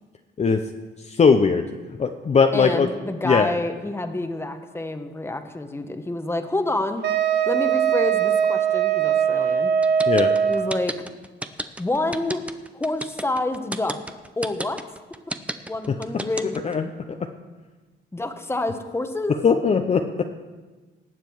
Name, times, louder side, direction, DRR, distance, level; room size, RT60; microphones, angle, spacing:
voice 1, 1.1-1.6 2.0-2.9 3.2-3.5 10.1-10.3 16.6-17.2 19.4-20.2, left 5 dB, 35° left, 5 dB, 0.7 m, -19 dB
voice 2, 2.5-7.0 7.5-9.7 10.4-10.9 11.8-12.4 12.7-14.0 14.4-14.8 15.7-16.6 18.1-19.4, left 2 dB, 10° left, 7 dB, 1.1 m, -28 dB
Wind instrument woodwind instrument, 7.0-10.9, right 8 dB, 55° right, 0.8 m, -21 dB
sound 1, 9.8-16.7, right 1 dB, 5° right, 0.6 m, -31 dB
18.5 x 7.5 x 4.7 m, 1.3 s
cardioid pair, 90°, 20 cm